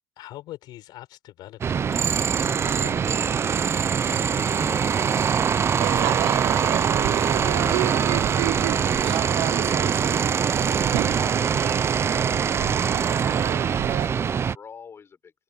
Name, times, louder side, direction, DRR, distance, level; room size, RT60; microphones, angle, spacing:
voice 1, 0.2-3.2 4.0-5.2 6.2-6.3 7.0-7.4 12.6-13.0, left 15 dB, 65° left, 6.4 m, -44 dB
sound 1, 1.6-14.6, right 7 dB, 35° right, 0.7 m, -23 dB
sound 2, 3.1-3.5 5.0-5.6 7.0-12.4, right 2 dB, 10° right, 2.9 m, -41 dB
Crowd / Fireworks, 5.8-14.1, right 19 dB, 70° right, 0.9 m, -30 dB
voice 2, 12.7-15.3, left 6 dB, 35° left, 6.0 m, -49 dB
supercardioid pair, 85°, 8 cm